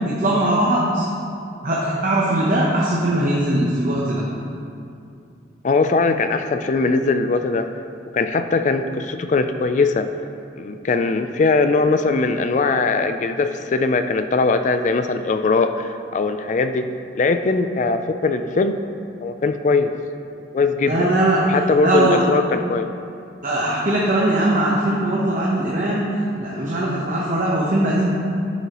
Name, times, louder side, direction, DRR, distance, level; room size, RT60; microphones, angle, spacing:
voice 1, 0.1-1.0 1.6-4.2 20.8-22.2 23.4-26.1 26.4-28.1, right 1 dB, 45° right, -5 dB, 0.9 m, -20 dB
voice 2, 5.6-7.7 8.1-10.1 10.6-16.9 17.1-18.8 19.2-19.9 20.5-21.0 21.5-22.9, left 3 dB, 40° left, 8 dB, 0.3 m, -20 dB
10.5 x 6.9 x 3.0 m, 2.5 s
head